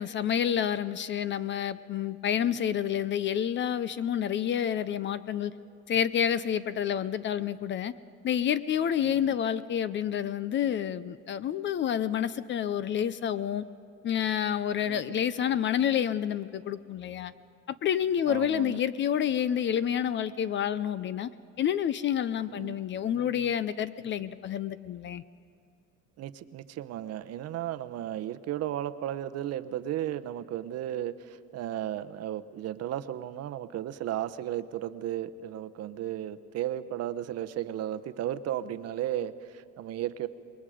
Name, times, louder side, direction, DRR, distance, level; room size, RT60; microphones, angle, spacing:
voice 1, 0.0-5.5 5.9-7.9 8.2-13.6 14.0-17.3 17.7-21.3 21.6-25.2, left 9 dB, 35° left, 16 dB, 0.5 m, -29 dB
voice 2, 9.0-9.4 14.8-15.2 18.2-18.8 22.5-22.8 26.2-40.3, right 12 dB, 50° right, 12 dB, 0.8 m, -34 dB
27.5 x 21.5 x 5.0 m, 2.6 s
cardioid pair, 145°, 33 cm